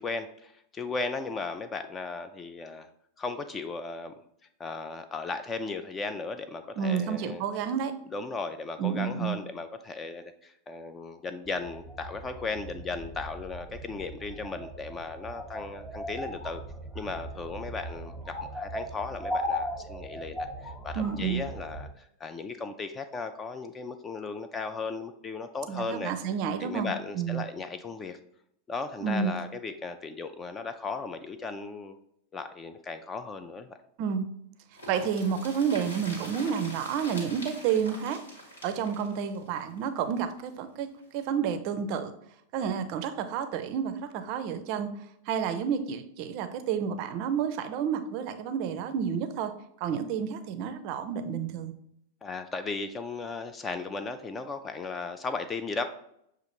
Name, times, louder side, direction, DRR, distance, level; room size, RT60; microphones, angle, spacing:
voice 1, 0.0-2.9 3.2-4.1 4.6-7.4 8.1-16.6 16.9-26.1 26.6-28.2 28.7-32.0 32.3-33.7 52.2-55.8, left 4 dB, 20° left, 9 dB, 0.3 m, -36 dB
voice 2, 6.8-7.9 8.8-9.4 21.0-21.4 25.7-27.4 29.0-29.3 34.0-34.3 34.9-38.2 38.6-42.1 42.5-44.9 45.3-49.5 49.8-51.7, right 7 dB, 45° right, 9 dB, 0.4 m, -30 dB
sound 1, 11.5-21.9, equal, ahead, 0.8 m, -38 dB
sound 2, 34.7-40.5 40.8-40.9 41.2-41.3, equal, 75° left, 1.4 m, -44 dB
6.6 x 2.4 x 2.9 m, 0.73 s
figure-of-eight pair, 90°, 0 cm